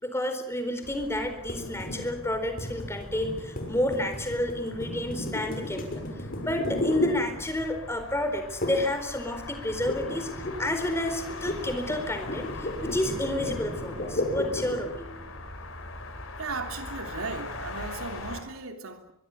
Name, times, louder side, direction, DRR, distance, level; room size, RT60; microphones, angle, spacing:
voice 1, 0.0-6.0 6.4-10.3 10.6-15.2, left 1 dB, 10° left, 7 dB, 4.2 m, -30 dB
sound 1, 0.8-18.4, left 2 dB, 70° left, 4.4 m, -42 dB
sound 2, 1.5-7.8 8.6-9.0 9.2-14.9, left 1 dB, 45° left, 6.4 m, -34 dB
voice 2, 16.4-19.1, right 4 dB, 80° right, 6 dB, 3.1 m, -36 dB
23.5 x 23.0 x 8.0 m, 0.74 s
head